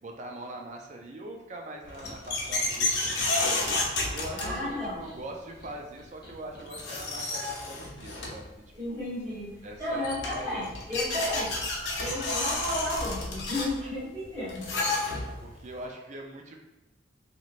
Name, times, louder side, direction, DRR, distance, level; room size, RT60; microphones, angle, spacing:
voice 1, 0.0-3.6 4.1-8.4 8.9-9.0 9.6-11.4 15.4-16.6, right 1 dB, 40° right, 2 dB, 0.4 m, -42 dB
sound 1, 1.8-5.0 6.3-6.4 6.7-8.5 9.7-9.8 10.0-15.5, left 2 dB, 70° left, 0.6 m, -31 dB
sound 2, 2.0-7.3, equal, 25° left, 0.8 m, -50 dB
voice 2, 4.3-5.0 8.7-9.5 9.8-11.5 12.0-14.8, left 1 dB, 15° right, -17 dB, 1.4 m, -33 dB
3.1 x 2.8 x 2.5 m, 0.96 s
head